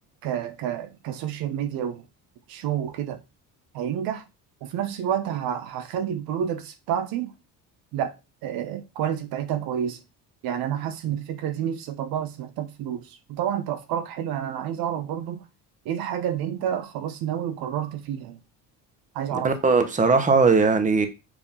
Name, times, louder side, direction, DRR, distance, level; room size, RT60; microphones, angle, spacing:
voice 1, 0.2-2.0 2.5-3.2 3.7-4.2 4.6-7.3 7.9-8.1 8.4-10.0 10.4-15.4 15.8-18.4 19.1-19.5, right 9 dB, 75° right, 1.0 m, -29 dB
voice 2, 19.3-21.1, right 4 dB, 20° right, 1.1 m, -19 dB
7.3 x 2.8 x 5.6 m
cardioid pair, 125°, 36 cm